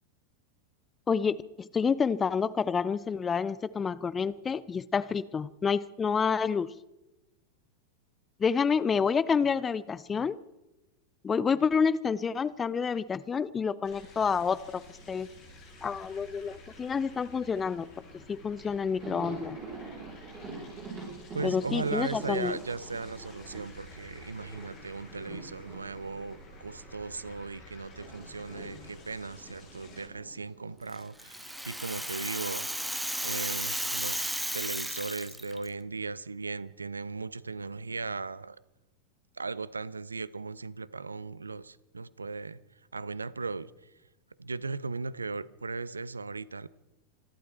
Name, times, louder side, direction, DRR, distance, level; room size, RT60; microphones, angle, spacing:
voice 1, 1.1-6.7 8.4-10.4 11.2-14.8 15.1-15.3 15.8-17.9 18.3-19.6 21.4-22.6, left 6 dB, 20° left, 0.6 m, -28 dB
sound 1, 13.8-30.1, left 1 dB, 35° left, 7.1 m, -51 dB
Thunder, 18.6-27.4 27.7-32.0 32.2-32.4 33.6-34.3, right 3 dB, 25° right, 7.1 m, -45 dB
voice 2, 21.3-38.6 39.4-42.6 42.9-43.7 44.4-46.7, right 4 dB, 75° right, 0.6 m, -37 dB
Rattle (instrument), 30.9-35.7, right 1 dB, ahead, 1.6 m, -34 dB
26.0 x 12.0 x 4.4 m
figure-of-eight pair, 90°, 0 cm